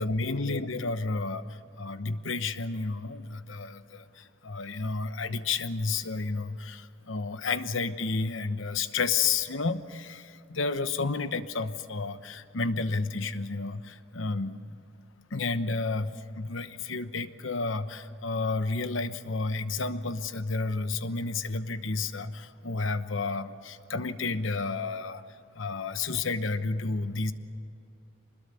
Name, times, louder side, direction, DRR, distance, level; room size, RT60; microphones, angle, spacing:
voice 1, 0.0-1.5 1.8-14.6 15.3-25.2 25.5-27.3, left 3 dB, 70° left, 11 dB, 1.0 m, -31 dB
25.0 x 20.5 x 6.9 m, 2.6 s
head